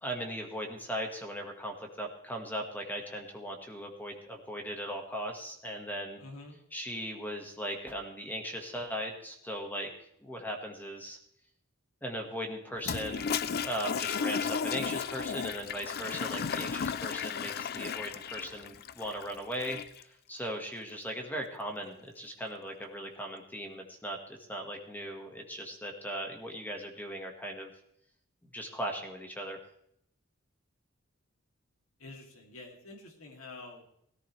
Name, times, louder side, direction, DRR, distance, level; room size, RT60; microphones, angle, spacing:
voice 1, 0.0-6.2 6.7-9.9 10.2-11.2 12.0-13.3 13.6-27.7 28.5-29.6, equal, 10° left, 2 dB, 1.6 m, -38 dB
voice 2, 6.2-6.6 32.0-33.9, left 3 dB, 80° left, 1 dB, 2.7 m, -47 dB
Toilet flush, 12.8-20.0, left 6 dB, 50° left, 0.5 m, -34 dB
17.5 x 14.0 x 3.3 m, 0.73 s
head